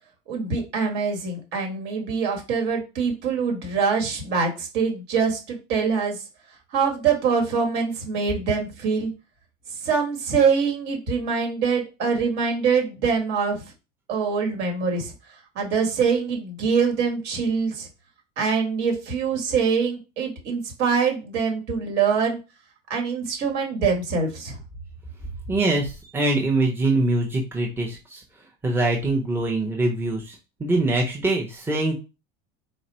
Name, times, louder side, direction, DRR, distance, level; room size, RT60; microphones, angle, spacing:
voice 1, 0.3-6.2 6.7-9.1 9.8-13.6 14.1-15.1 15.6-17.9 18.4-22.4 22.9-24.6, right 5 dB, 55° right, 2 dB, 1.7 m, -24 dB
voice 2, 25.5-28.2 28.6-32.0, right 2 dB, 10° right, -1 dB, 0.8 m, -23 dB
4.1 x 2.4 x 4.3 m, 0.29 s
cardioid pair, 140°, 21 cm